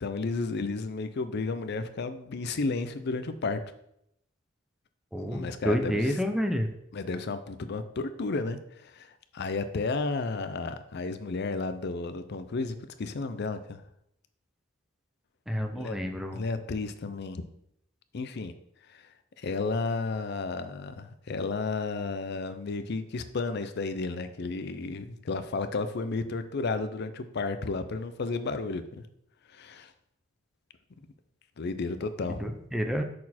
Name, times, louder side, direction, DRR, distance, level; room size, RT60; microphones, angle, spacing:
voice 1, 0.0-3.6 5.3-6.2 6.9-13.8 15.7-17.4 18.1-18.5 18.9-19.1 19.4-29.0 29.5-29.9 31.6-32.4, left 3 dB, 55° left, 11 dB, 0.5 m, -33 dB
voice 2, 5.1-6.7 15.5-16.4 32.4-33.0, equal, ahead, 5 dB, 0.5 m, -29 dB
6.4 x 4.2 x 4.2 m, 0.76 s
head